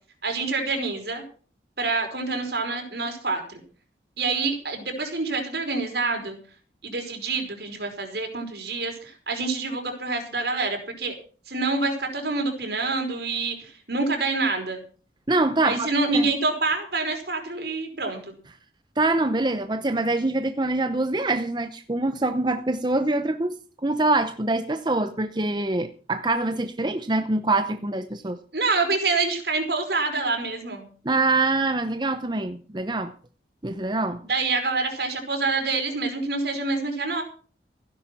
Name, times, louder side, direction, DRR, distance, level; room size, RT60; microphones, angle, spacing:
voice 1, 0.2-1.2 1.8-3.6 4.2-6.4 6.8-11.1 11.5-14.8 15.6-18.3 28.5-30.9 34.2-37.2, right 3 dB, 65° right, 5.0 m, -27 dB
voice 2, 15.3-16.3 19.0-28.4 31.0-33.1 33.6-34.2, right 2 dB, 25° right, 0.8 m, -25 dB
16.0 x 10.5 x 6.1 m
head